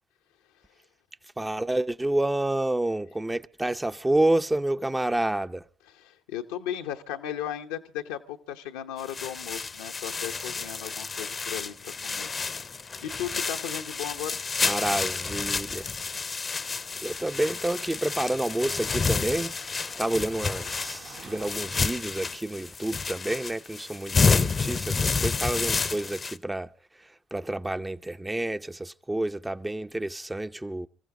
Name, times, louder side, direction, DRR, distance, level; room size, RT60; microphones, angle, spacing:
voice 1, 1.2-5.7 14.6-15.9 17.0-19.5 20.0-30.9, right 1 dB, 15° right, 0.7 m, -29 dB
voice 2, 6.0-12.3 12.6-14.4, left 10 dB, 80° left, 0.8 m, -36 dB
sound 1, 9.0-26.4, left 4 dB, 40° left, 0.7 m, -30 dB
sound 2, 16.5-21.5, right 4 dB, 80° right, 1.5 m, -51 dB
25.0 x 15.0 x 3.7 m
hypercardioid pair, 45°, 0 cm